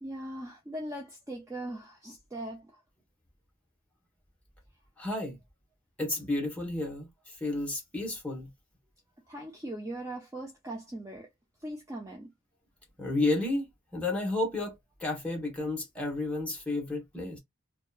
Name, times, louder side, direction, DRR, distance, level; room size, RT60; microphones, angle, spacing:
voice 1, 0.0-2.7 9.3-11.3 11.6-12.3, right 1 dB, 15° right, 0.5 m, -40 dB
voice 2, 5.0-5.4 6.0-7.1 7.4-8.5 13.0-17.4, left 2 dB, 5° left, 1.0 m, -31 dB
2.7 x 2.2 x 2.3 m
head